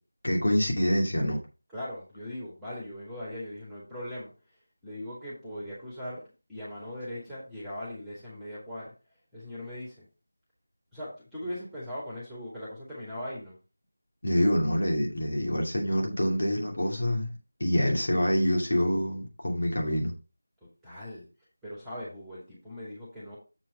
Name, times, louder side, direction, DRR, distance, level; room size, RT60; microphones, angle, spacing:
voice 1, 0.2-1.4 14.2-17.3 17.6-20.1, equal, 60° left, 0 dB, 2.7 m, -26 dB
voice 2, 1.7-4.3 4.8-6.2 6.5-8.9 9.3-10.0 10.9-13.6 20.6-21.3 21.6-23.4, left 1 dB, ahead, -8 dB, 2.3 m, -39 dB
7.6 x 4.5 x 5.1 m, 0.31 s
figure-of-eight pair, 165°, 0 cm